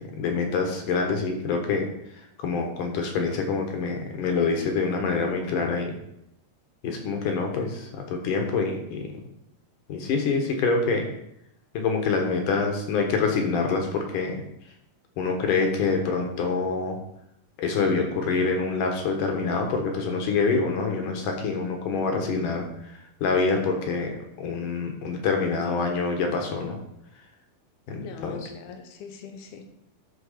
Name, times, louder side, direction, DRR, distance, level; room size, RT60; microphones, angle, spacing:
voice 1, 0.0-1.9 2.4-6.0 6.8-9.1 9.9-11.1 11.7-14.4 15.2-17.0 17.6-26.8 27.9-28.5, left 4 dB, 65° left, 3 dB, 2.6 m, -26 dB
voice 2, 28.0-29.7, left 5 dB, 80° left, 5 dB, 3.0 m, -41 dB
10.5 x 4.6 x 6.5 m, 0.79 s
omnidirectional pair, 4.5 m